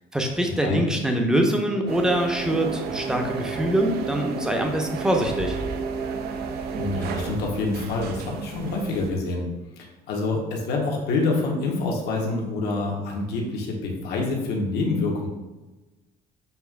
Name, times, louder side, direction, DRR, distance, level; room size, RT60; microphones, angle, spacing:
voice 1, 0.1-5.6, right 1 dB, 5° right, 2 dB, 0.6 m, -24 dB
sound 1, 1.9-9.1, right 5 dB, 70° right, 0.4 m, -32 dB
voice 2, 6.7-9.4 9.8-15.3, left 3 dB, 80° left, 0 dB, 1.0 m, -26 dB
6.8 x 2.4 x 2.4 m, 1.1 s
cardioid pair, 110°, 17 cm